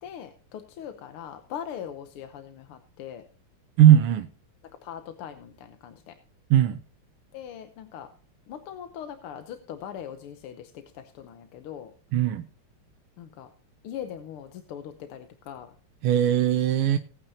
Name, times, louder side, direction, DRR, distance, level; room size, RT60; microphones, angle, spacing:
voice 1, 0.0-3.2 4.8-6.2 7.3-8.1 8.5-11.9 13.2-13.5 13.8-15.8, left 9 dB, 90° left, 8 dB, 1.8 m, -40 dB
voice 2, 3.8-4.3 6.5-6.8 12.1-12.5 16.0-17.0, right 11 dB, 85° right, 8 dB, 1.6 m, -19 dB
19.0 x 8.8 x 2.7 m, 0.41 s
omnidirectional pair, 2.4 m